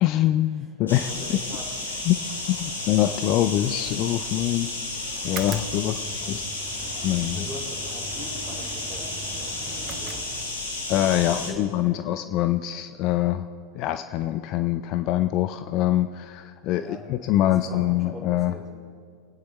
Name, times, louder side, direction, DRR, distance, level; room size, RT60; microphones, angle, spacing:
voice 1, 0.0-1.1 2.1-2.2 2.5-4.7 5.2-6.4 7.0-7.5 10.9-13.5 13.7-18.5, left 13 dB, 40° left, 9 dB, 0.5 m, -24 dB
voice 2, 0.8-1.7 5.8-6.4 7.3-10.3 11.1-12.0 16.8-17.1 17.5-18.6, equal, 15° right, -3 dB, 4.2 m, -42 dB
sound 1, 0.9-11.5, left 2 dB, 75° left, 2.4 m, -32 dB
sound 2, 5.2-10.9, right 7 dB, 30° right, 0.6 m, -42 dB
29.0 x 9.8 x 3.3 m, 2.1 s
figure-of-eight pair, 90°, 0 cm